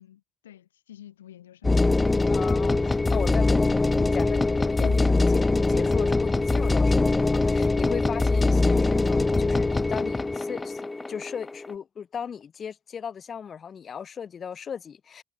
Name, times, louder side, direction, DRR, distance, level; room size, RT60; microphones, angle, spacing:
voice 1, 0.0-1.9 4.8-5.0, left 11 dB, 90° left, 6.1 m, -47 dB
sound 1, 1.6-11.7, left 3 dB, 20° left, 0.9 m, -23 dB
voice 2, 2.3-15.2, left 7 dB, 50° left, 1.9 m, -37 dB
hypercardioid pair, 50°, 0 cm